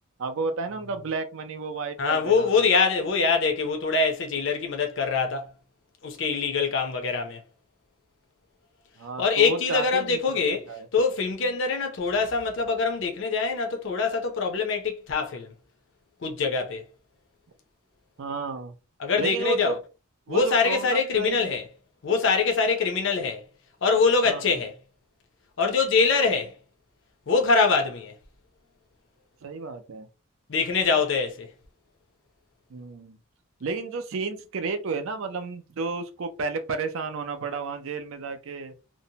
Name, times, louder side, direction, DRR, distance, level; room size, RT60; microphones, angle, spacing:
voice 1, 0.2-2.5 9.0-10.9 18.2-18.7 19.2-19.7 20.3-21.5 24.2-24.5 29.4-30.1 32.7-33.2 33.6-38.7, right 4 dB, 65° right, 0.4 m, -32 dB
voice 2, 2.0-5.5 6.0-7.4 9.2-15.5 16.2-16.8 19.0-19.8 20.3-21.7 22.0-23.4 23.8-24.7 25.6-26.5 27.3-28.1 30.5-31.5, left 4 dB, 55° left, 0.5 m, -24 dB
2.6 x 2.0 x 2.7 m
head